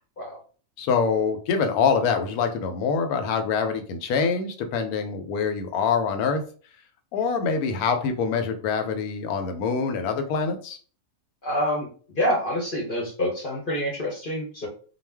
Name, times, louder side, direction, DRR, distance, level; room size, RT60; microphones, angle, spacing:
voice 1, 0.8-6.4 7.1-10.8, left 5 dB, 90° left, 7 dB, 1.1 m, -25 dB
voice 2, 11.4-11.9 12.1-14.7, equal, 50° left, -1 dB, 0.7 m, -27 dB
2.4 x 2.1 x 3.3 m, 0.41 s
omnidirectional pair, 1.5 m